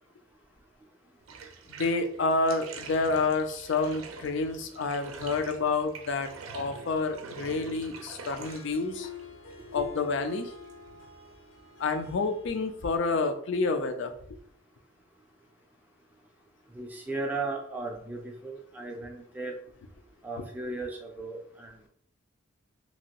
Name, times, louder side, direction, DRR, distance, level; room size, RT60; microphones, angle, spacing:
Bathtub (filling or washing), 1.2-12.9, right 4 dB, 85° right, 0.5 m, -46 dB
voice 1, 1.7-6.3 6.5-9.1 9.7-10.5 11.8-14.1, left 3 dB, 60° left, 7 dB, 0.4 m, -29 dB
Harp, 8.2-13.5, left 5 dB, 85° left, 0.8 m, -48 dB
voice 2, 16.7-19.6 20.2-21.9, right 3 dB, 10° right, 0 dB, 0.4 m, -36 dB
2.9 x 2.6 x 2.9 m, 0.64 s
head